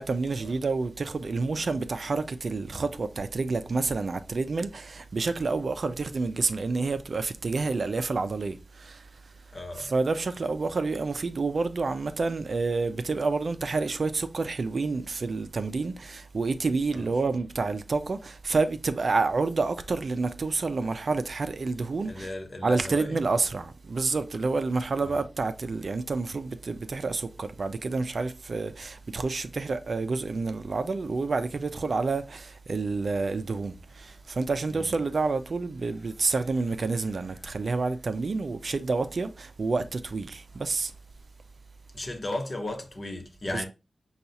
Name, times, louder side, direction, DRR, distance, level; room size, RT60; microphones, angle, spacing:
voice 1, 0.0-9.1 9.7-22.3 22.6-40.9 43.5-43.6, right 3 dB, 65° right, 0.4 m, -29 dB
voice 2, 9.5-9.9 16.9-17.1 22.0-23.2 25.0-25.1 34.7-34.9 41.9-43.6, left 1 dB, 50° left, 0.9 m, -35 dB
5.1 x 2.3 x 2.8 m
cardioid pair, 55°, 0 cm